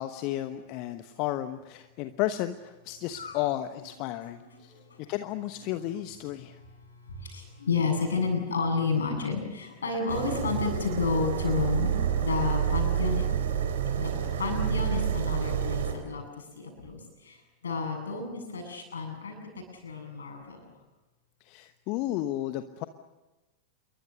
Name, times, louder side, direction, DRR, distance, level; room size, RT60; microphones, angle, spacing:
voice 1, 0.0-4.7 5.1-6.6 21.5-22.8, left 14 dB, 45° left, 10 dB, 1.1 m, -33 dB
voice 2, 7.3-13.3 14.0-14.1 14.4-16.2 16.6-17.0 17.3-17.4 17.6-19.3 19.8-20.6, left 4 dB, 70° left, 4 dB, 7.9 m, -30 dB
sound 1, 10.1-15.9, right 8 dB, 60° right, 4.0 m, -28 dB
28.5 x 23.0 x 6.6 m, 1.1 s
figure-of-eight pair, 90°, 0 cm